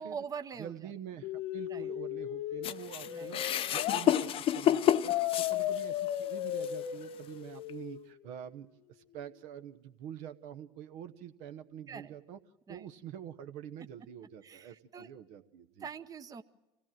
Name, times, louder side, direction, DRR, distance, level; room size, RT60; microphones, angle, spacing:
voice 1, 0.0-0.9 1.7-1.9 3.1-3.4 5.6-5.7 11.9-12.1 12.7-12.8 14.4-15.1 15.8-16.4, right 6 dB, 25° right, 10 dB, 0.9 m, -43 dB
voice 2, 0.6-3.4 3.7-4.3 4.5-12.4 12.7-15.9, right 9 dB, 60° right, 9 dB, 1.0 m, -46 dB
sound 1, 1.2-4.0 5.1-8.1, left 13 dB, 60° left, 1.0 m, -35 dB
sound 2, 2.6-6.1 6.6-6.7 7.7-7.8, left 11 dB, 40° left, 0.7 m, -29 dB
25.5 x 16.5 x 7.6 m, 0.99 s
hypercardioid pair, 75°, 14 cm